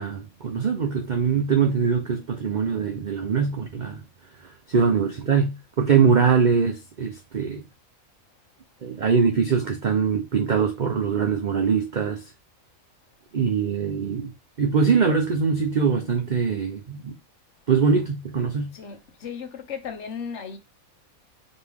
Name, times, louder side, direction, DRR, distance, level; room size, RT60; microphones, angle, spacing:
voice 1, 0.0-4.0 4.7-7.6 8.8-12.2 13.3-14.3 14.6-17.1 17.7-18.7, right 6 dB, 50° right, 0.6 m, -22 dB
voice 2, 18.7-20.6, left 6 dB, 60° left, 1.2 m, -35 dB
4.2 x 3.0 x 3.5 m
omnidirectional pair, 1.5 m